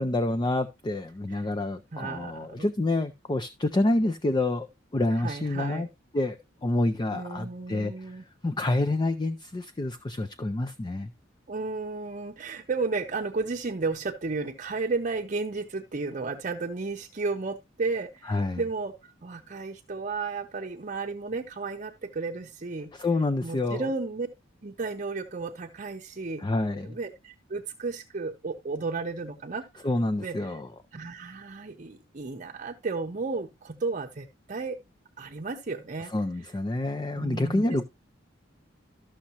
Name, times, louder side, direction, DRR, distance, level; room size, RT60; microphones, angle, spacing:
voice 1, 0.0-5.9 6.1-11.1 18.3-18.6 22.9-23.9 26.4-27.0 29.8-30.7 36.1-37.9, left 2 dB, 25° left, 0.4 m, -28 dB
voice 2, 1.9-2.6 5.2-5.9 7.1-8.2 11.5-22.9 23.4-24.3 24.6-26.5 26.8-29.9 30.2-30.5 30.9-34.8 35.2-36.1 37.2-37.9, right 3 dB, 40° right, 0.7 m, -33 dB
13.0 x 6.3 x 2.9 m
head